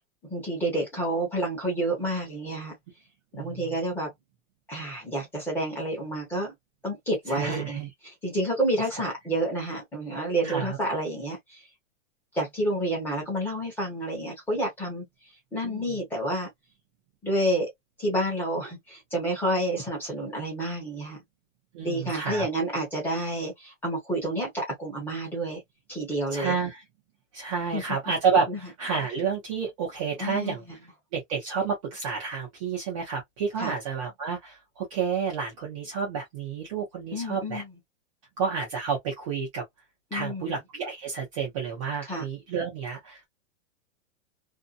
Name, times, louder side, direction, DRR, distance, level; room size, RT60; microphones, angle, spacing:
voice 1, 0.3-2.7 3.3-4.1 4.7-6.5 6.8-11.7 12.3-15.1 15.5-16.5 17.2-17.7 18.0-21.2 21.8-25.6 25.9-26.5 27.7-27.8 28.5-28.6 30.2-30.5 33.6-33.7 37.1-37.7 40.1-40.6 42.1-42.2, right 1 dB, 5° left, 0.9 m, -29 dB
voice 2, 3.3-3.7 7.3-7.9 10.4-10.8 15.6-16.0 21.7-22.5 26.3-26.8 27.3-30.6 31.1-37.6 38.4-39.6 40.1-43.3, right 5 dB, 25° right, 0.6 m, -30 dB
2.7 x 2.2 x 2.4 m
supercardioid pair, 175°, 38 cm